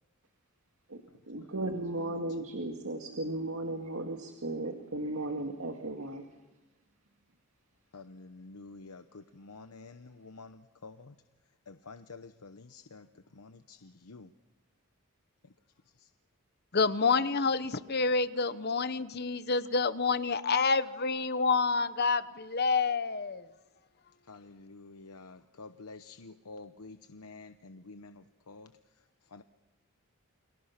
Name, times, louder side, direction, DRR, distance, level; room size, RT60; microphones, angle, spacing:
voice 1, 0.9-6.2, right 2 dB, 70° right, 4 dB, 2.1 m, -36 dB
voice 2, 7.9-11.2 11.7-14.3 15.4-15.5 15.8-16.1 24.2-29.4, left 3 dB, 85° left, 9 dB, 0.9 m, -50 dB
voice 3, 16.7-23.5, left 4 dB, 45° left, 13 dB, 1.0 m, -28 dB
29.5 x 24.0 x 5.9 m, 1.1 s
head